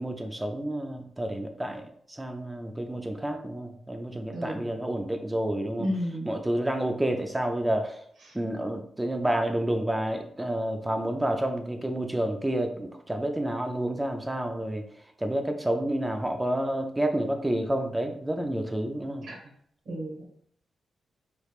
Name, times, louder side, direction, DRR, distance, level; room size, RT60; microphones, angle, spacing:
voice 1, 0.0-5.9 6.3-8.0 8.3-14.9 15.2-19.3, right 1 dB, 10° right, 5 dB, 0.3 m, -29 dB
voice 2, 4.3-4.7 5.8-6.3 19.2-19.3 19.9-20.3, equal, 80° right, -1 dB, 1.0 m, -32 dB
3.4 x 3.1 x 2.4 m, 0.65 s
wide cardioid pair, 150°, 0 cm